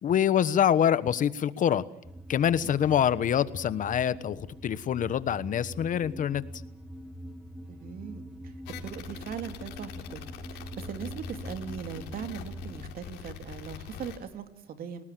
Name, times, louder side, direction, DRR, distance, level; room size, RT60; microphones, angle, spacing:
voice 1, 0.0-1.8 2.3-6.4, left 9 dB, 50° left, 16 dB, 1.2 m, -25 dB
sound 1, 2.0-12.8, equal, 5° right, 2.5 m, -43 dB
voice 2, 2.5-2.9 7.7-8.5 8.8-15.0, right 8 dB, 60° right, 8 dB, 2.9 m, -40 dB
sound 2, 8.7-14.2, left 9 dB, 90° left, 4.0 m, -43 dB
29.5 x 19.0 x 7.6 m, 0.84 s
cardioid pair, 110°, 17 cm